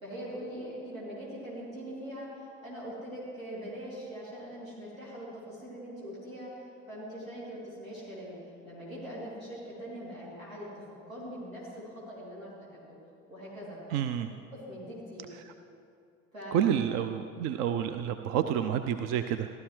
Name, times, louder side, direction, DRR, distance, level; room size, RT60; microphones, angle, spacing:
voice 1, 0.0-12.5 13.3-13.9 14.5-15.3 16.3-16.6, equal, 90° right, -8 dB, 2.9 m, -42 dB
voice 2, 13.9-14.3 15.3-15.5 16.5-19.5, right 9 dB, 40° right, 9 dB, 0.4 m, -29 dB
15.5 x 12.0 x 3.1 m, 2.4 s
figure-of-eight pair, 65°, 39 cm